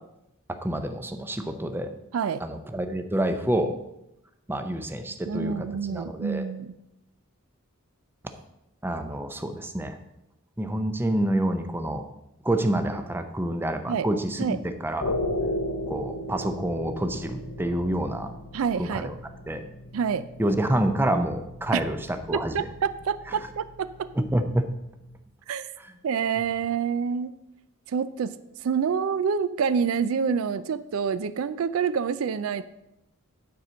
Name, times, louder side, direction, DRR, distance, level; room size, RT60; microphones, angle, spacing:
voice 1, 0.5-1.9 2.4-3.7 4.5-6.5 8.8-10.0 10.6-12.0 12.4-15.1 15.9-18.3 18.8-19.1 19.5-19.7 20.4-22.7 24.1-24.6 25.8-25.9, right 1 dB, 10° right, 7 dB, 0.5 m, -28 dB
voice 2, 5.3-6.7 13.9-14.1 14.4-14.6 18.5-19.1 19.9-20.2 21.7-21.8 22.3-24.1 25.5-25.7 26.0-27.3 27.9-28.3 28.6-32.6, right 6 dB, 70° right, 14 dB, 0.4 m, -27 dB
sound 1, 15.0-25.2, left 1 dB, 65° left, 0.7 m, -36 dB
9.3 x 4.3 x 6.2 m, 0.87 s
head